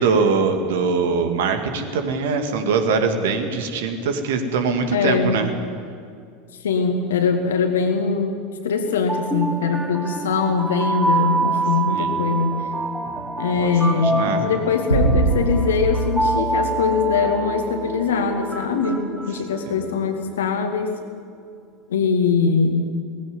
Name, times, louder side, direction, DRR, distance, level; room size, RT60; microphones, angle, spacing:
voice 1, 0.0-5.5 11.9-12.1 13.6-14.5 19.7-19.9, right 4 dB, 60° right, 6 dB, 2.1 m, -22 dB
voice 2, 4.9-5.5 6.6-8.4 8.6-12.7 13.4-21.0 21.9-22.9, left 5 dB, 70° left, 5 dB, 2.3 m, -22 dB
sound 1, 8.9-20.0, right 3 dB, 5° right, 1.5 m, -26 dB
sound 2, 14.9-17.5, right 2 dB, 85° left, 2.0 m, -22 dB
18.5 x 16.0 x 9.6 m, 2.2 s
figure-of-eight pair, 75°, 0 cm